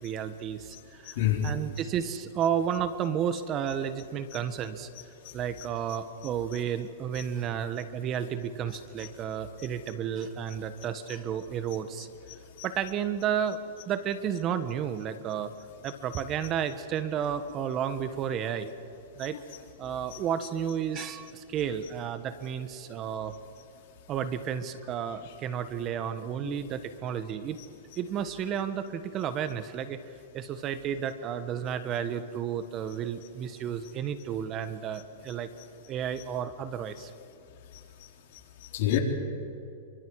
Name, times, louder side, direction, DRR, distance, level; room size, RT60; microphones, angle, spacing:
voice 1, 0.0-4.9 5.3-12.1 12.6-13.6 13.9-15.5 15.8-18.7 19.2-19.4 19.8-23.3 24.1-27.6 28.0-30.0 30.3-35.5 35.9-37.1, right 8 dB, 30° right, 11 dB, 1.3 m, -32 dB
voice 2, 1.0-1.5 4.3-4.4 5.2-5.7 6.5-6.6 7.2-7.3 9.0-9.1 9.6-9.7 12.3-12.7 16.1-16.2 19.2-19.6 20.1-20.2 25.2-25.3 26.4-26.6 27.6-27.7 36.2-36.3 37.7-38.1 38.6-39.0, left 12 dB, 60° left, 2 dB, 3.6 m, -32 dB
28.5 x 25.0 x 4.8 m, 2.8 s
hypercardioid pair, 135°, 0 cm